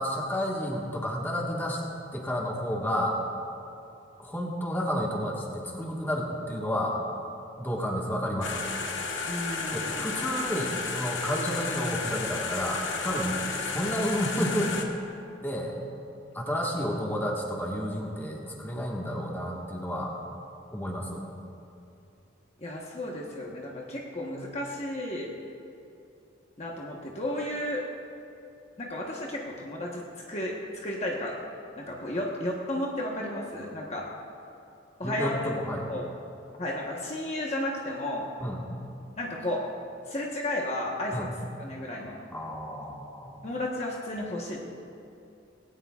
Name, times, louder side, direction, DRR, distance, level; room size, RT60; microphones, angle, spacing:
voice 1, 0.0-1.8 2.1-3.2 4.2-7.0 7.6-8.6 9.7-14.7 15.4-15.8 16.3-20.1 20.7-21.2 35.0-35.9 38.4-38.6 41.1-41.3 42.3-43.4, equal, 10° left, -2 dB, 1.6 m, -31 dB
sound 1, 8.4-14.8, left 4 dB, 80° left, 1.4 m, -32 dB
voice 2, 9.2-10.3 22.6-25.3 26.6-27.8 28.8-31.4 31.8-34.1 35.0-35.4 35.9-36.1 36.6-38.3 39.2-39.7 40.1-41.3 41.6-42.3 43.4-44.6, left 1 dB, 35° left, -2 dB, 1.2 m, -33 dB
19.5 x 17.5 x 2.4 m, 2.7 s
head